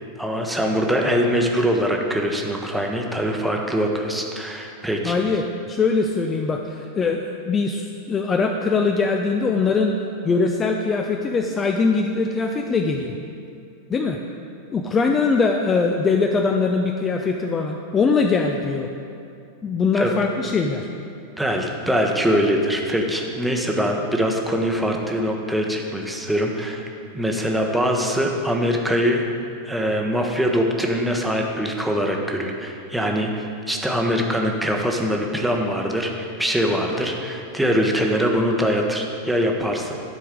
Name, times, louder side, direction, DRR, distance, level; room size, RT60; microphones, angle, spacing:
voice 1, 0.2-5.2 19.9-20.1 21.4-26.8 27.1-29.2 29.7-39.9, equal, 5° right, 1 dB, 0.9 m, -23 dB
voice 2, 5.0-5.4 5.7-9.9 10.2-13.1 13.9-14.2 14.7-18.9 19.6-20.9, left 4 dB, 20° left, 3 dB, 0.4 m, -22 dB
11.0 x 4.6 x 5.1 m, 2.5 s
figure-of-eight pair, 90°, 0 cm